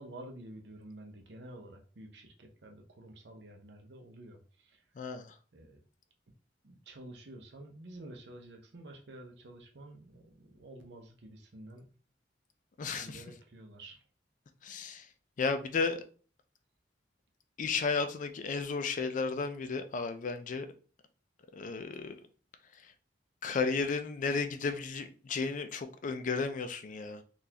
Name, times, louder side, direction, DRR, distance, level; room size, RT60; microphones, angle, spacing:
voice 1, 0.0-4.4 4.7-4.8 5.5-5.8 6.6-11.9 12.8-14.0, right 1 dB, 70° right, 0.7 m, -50 dB
voice 2, 5.0-5.3 12.8-13.2 14.6-15.1 15.4-16.0 17.6-20.7 21.5-22.2 23.4-27.2, left 4 dB, 45° left, 0.4 m, -33 dB
3.9 x 2.4 x 2.8 m
head